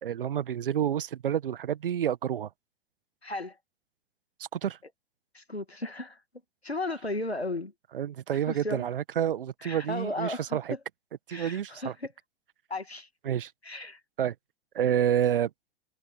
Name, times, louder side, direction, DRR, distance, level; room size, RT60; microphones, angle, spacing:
voice 1, 0.0-2.5 4.5-4.8 7.9-10.8 11.3-11.9 13.3-13.5 14.2-14.3 14.8-15.5, right 10 dB, 60° right, 1.7 m, -28 dB
voice 2, 3.2-3.6 5.3-6.2 6.6-7.7 8.5-8.8 9.6-10.8 11.3-12.1 12.7-13.1 13.6-14.0, left 2 dB, 85° left, 2.4 m, -35 dB
figure-of-eight pair, 100°, 31 cm